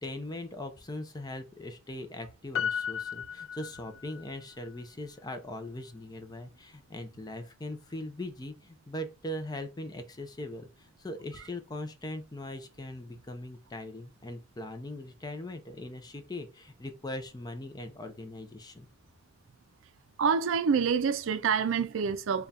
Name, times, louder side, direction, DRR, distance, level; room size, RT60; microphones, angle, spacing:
voice 1, 0.0-18.9, left 1 dB, 20° left, 0.5 m, -40 dB
Piano, 2.5-4.3 4.6-4.7, left 7 dB, 80° left, 0.3 m, -34 dB
voice 2, 20.2-22.5, right 6 dB, 80° right, 0.4 m, -27 dB
3.6 x 2.3 x 4.0 m
head